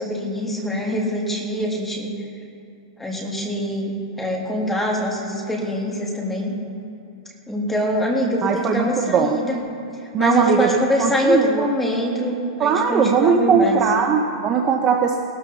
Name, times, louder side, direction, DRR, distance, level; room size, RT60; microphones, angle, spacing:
voice 1, 0.0-2.1 3.0-6.5 7.5-9.6 10.2-13.8, equal, 5° left, -2 dB, 2.0 m, -23 dB
voice 2, 8.4-9.4 10.1-11.7 12.6-15.2, right 6 dB, 20° right, 3 dB, 0.7 m, -20 dB
18.0 x 13.0 x 4.1 m, 2.7 s
supercardioid pair, 165°, 3 cm